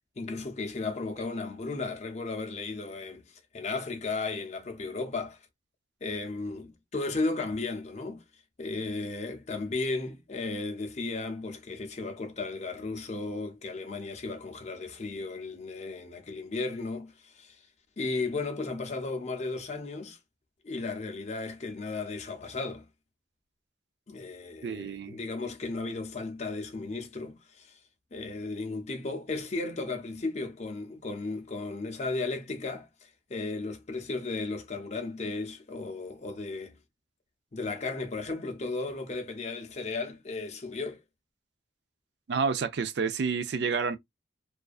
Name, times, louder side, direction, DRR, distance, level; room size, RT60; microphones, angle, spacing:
voice 1, 0.2-5.4 6.0-8.2 8.6-17.6 18.0-20.2 20.6-22.9 24.1-27.8 28.1-36.8 37.5-41.0, left 3 dB, 35° left, 0.5 m, -35 dB
voice 2, 24.6-25.2 42.3-44.0, right 5 dB, 60° right, 0.4 m, -29 dB
2.4 x 2.2 x 2.3 m
head